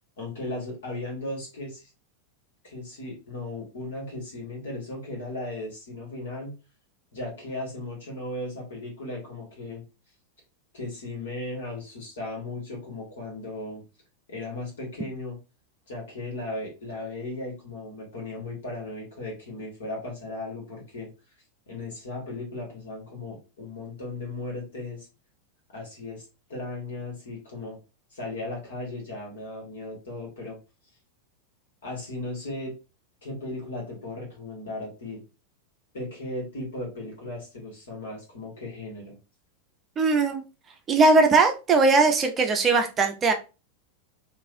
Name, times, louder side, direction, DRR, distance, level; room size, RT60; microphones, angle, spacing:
voice 1, 0.2-1.9 2.6-6.6 7.1-9.8 10.7-13.8 14.3-15.4 15.9-21.1 21.7-25.1 25.7-26.2 26.5-27.8 28.1-30.6 31.8-32.7 33.2-35.2 35.9-39.1, left 2 dB, 60° left, -1 dB, 1.6 m, -36 dB
voice 2, 40.0-40.4 40.9-43.3, right 3 dB, 25° right, 5 dB, 0.5 m, -20 dB
3.1 x 2.6 x 2.6 m, 0.30 s
figure-of-eight pair, 90°, 0 cm